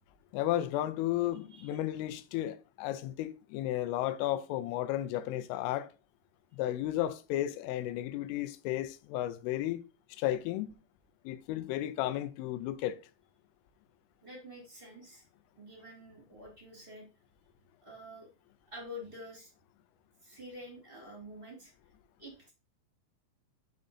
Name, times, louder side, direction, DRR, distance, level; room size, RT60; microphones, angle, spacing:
voice 1, 0.3-5.9 6.5-9.8 10.1-10.7 11.2-13.0, left 13 dB, 90° left, 3.2 m, -33 dB
voice 2, 14.2-15.2 15.5-17.1 17.8-18.3 18.6-19.5 20.2-21.7 22.2-22.5, left 1 dB, 20° right, 1.3 m, -48 dB
7.4 x 3.9 x 5.3 m
omnidirectional pair, 5.6 m